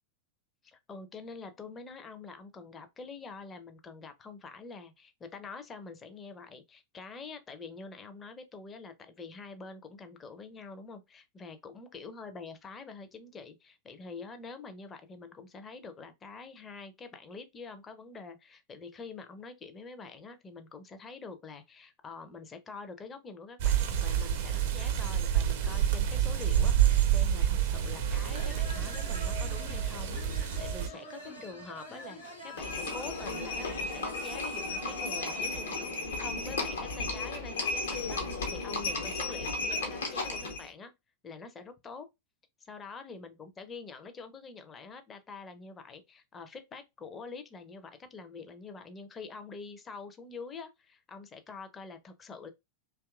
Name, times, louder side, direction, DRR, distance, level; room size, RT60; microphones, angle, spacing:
voice 1, 0.6-40.9 41.2-42.1 42.7-52.5, left 4 dB, 20° left, 0.4 m, -46 dB
sound 1, 23.6-30.9, right 10 dB, 50° right, 0.4 m, -28 dB
sound 2, 27.8-35.7, left 1 dB, 85° left, 1.1 m, -46 dB
Livestock farm animals working animals, 32.6-40.7, left 3 dB, 70° left, 0.7 m, -34 dB
2.7 x 2.3 x 2.3 m
figure-of-eight pair, 90°, 0 cm